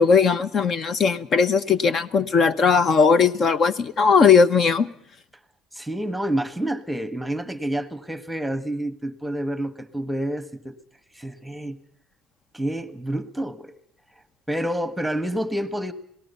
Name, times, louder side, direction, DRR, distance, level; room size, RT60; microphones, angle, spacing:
voice 1, 0.0-4.9, left 5 dB, 45° left, 13 dB, 1.2 m, -18 dB
voice 2, 5.7-10.8 11.1-11.8 12.5-13.8 14.5-15.9, right 1 dB, 5° right, 12 dB, 1.4 m, -28 dB
26.5 x 18.5 x 5.6 m, 0.68 s
cardioid pair, 110°, 0 cm